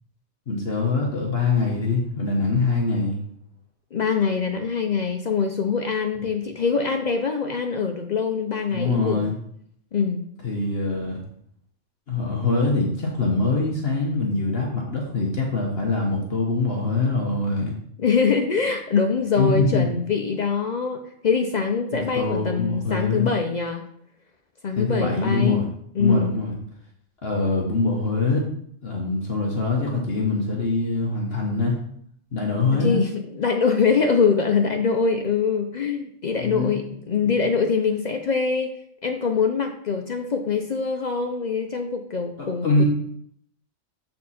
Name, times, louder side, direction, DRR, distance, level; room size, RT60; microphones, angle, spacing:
voice 1, 0.5-3.2 8.7-9.3 10.4-11.2 12.1-17.7 19.4-19.9 21.9-23.3 24.8-25.7 26.0-26.6 27.2-28.4 28.8-31.8 32.3-33.0 36.4-36.8 37.2-37.3 42.4-42.8, left 3 dB, 50° left, -1 dB, 1.2 m, -24 dB
voice 2, 3.9-9.3 9.9-10.2 18.0-23.8 24.6-26.3 32.7-38.7 39.0-42.8, left 5 dB, 65° left, 5 dB, 0.4 m, -23 dB
7.4 x 4.4 x 4.2 m, 0.67 s
omnidirectional pair, 1.4 m